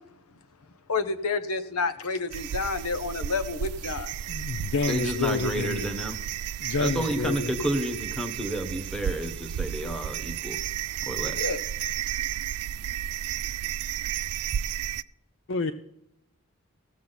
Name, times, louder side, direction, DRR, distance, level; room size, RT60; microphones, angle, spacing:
voice 1, 0.9-4.1 11.4-11.6, left 4 dB, 85° left, 10 dB, 0.9 m, -29 dB
sound 1, 2.3-15.0, right 10 dB, 80° right, 0.3 m, -33 dB
voice 2, 4.3-6.0 6.6-7.5 15.5-15.7, left 4 dB, 60° left, 11 dB, 0.5 m, -29 dB
voice 3, 4.9-6.2 6.8-10.6 11.1-11.5, right 1 dB, 5° left, 3 dB, 1.2 m, -30 dB
16.5 x 7.3 x 4.0 m, 0.80 s
head